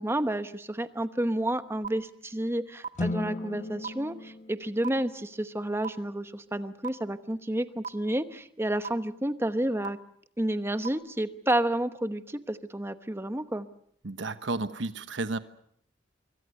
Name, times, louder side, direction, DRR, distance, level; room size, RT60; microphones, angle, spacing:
voice 1, 0.0-10.0 10.4-13.7, right 1 dB, 15° right, 10 dB, 1.0 m, -30 dB
sound 1, 1.8-1.9 2.8-2.9 3.8-3.9 4.8-4.9 5.8-5.9 6.8-6.9 7.8-7.9 8.8-8.9 9.8-9.9 10.8-10.9, right 6 dB, 45° right, 1.5 m, -33 dB
sound 2, 2.9-5.4, left 2 dB, 40° left, 1.0 m, -36 dB
voice 2, 14.0-15.4, right 3 dB, 90° right, 11 dB, 1.1 m, -32 dB
25.5 x 24.0 x 6.6 m, 0.68 s
head